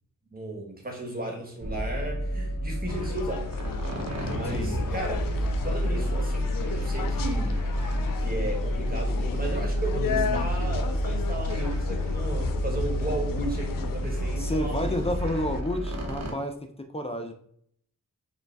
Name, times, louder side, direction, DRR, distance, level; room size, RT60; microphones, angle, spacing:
voice 1, 0.3-3.5 4.3-7.6 8.2-15.1 16.3-16.4, right 2 dB, 25° right, 1 dB, 1.4 m, -35 dB
sound 1, 1.6-16.3, equal, 50° right, 1.0 m, -29 dB
sound 2, 2.9-15.6, left 5 dB, 90° left, 0.5 m, -34 dB
voice 2, 4.4-4.8 14.4-17.3, left 1 dB, 20° left, 6 dB, 0.5 m, -31 dB
5.1 x 2.4 x 3.4 m, 0.63 s
wide cardioid pair, 75°, 33 cm